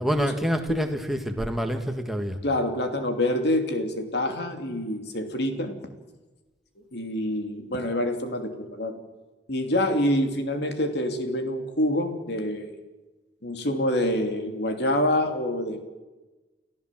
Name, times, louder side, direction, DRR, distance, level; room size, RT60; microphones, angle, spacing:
voice 1, 0.0-2.4, equal, ahead, 4 dB, 1.8 m, -27 dB
voice 2, 2.4-5.7 6.9-9.0 9.5-12.7 13.4-15.8, left 1 dB, 65° left, 5 dB, 2.9 m, -26 dB
29.5 x 14.5 x 7.6 m, 1.2 s
head